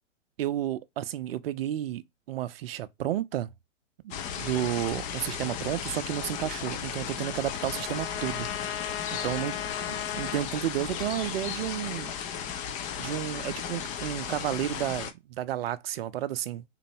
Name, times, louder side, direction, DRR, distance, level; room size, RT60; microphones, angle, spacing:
voice 1, 0.4-2.0 2.3-3.5 4.0-8.5 8.8-9.6 9.9-12.1 13.0-16.6, right 12 dB, 50° right, 0.6 m, -32 dB
sound 1, 4.1-15.1, left 8 dB, 20° left, 0.5 m, -35 dB
Trumpet, 6.1-10.5, left 10 dB, 55° left, 0.8 m, -38 dB
3.8 x 2.9 x 4.4 m
hypercardioid pair, 115°, 37 cm